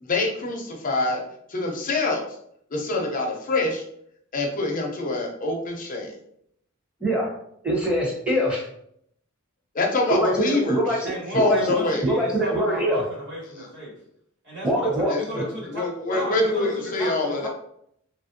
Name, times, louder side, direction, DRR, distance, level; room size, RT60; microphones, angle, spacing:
voice 1, 0.0-1.2 1.5-2.2 2.7-3.8 4.3-6.1 9.7-10.8 11.3-12.0 15.1-15.4 15.7-17.5, left 2 dB, 40° left, 1 dB, 0.7 m, -25 dB
voice 2, 7.0-7.3 7.6-8.7 10.1-11.7 12.0-13.0 14.6-15.1, right 1 dB, 5° right, -4 dB, 0.9 m, -23 dB
voice 3, 11.0-13.9 14.4-17.5, right 1 dB, 60° right, -5 dB, 1.3 m, -35 dB
3.2 x 2.5 x 2.6 m, 0.70 s
head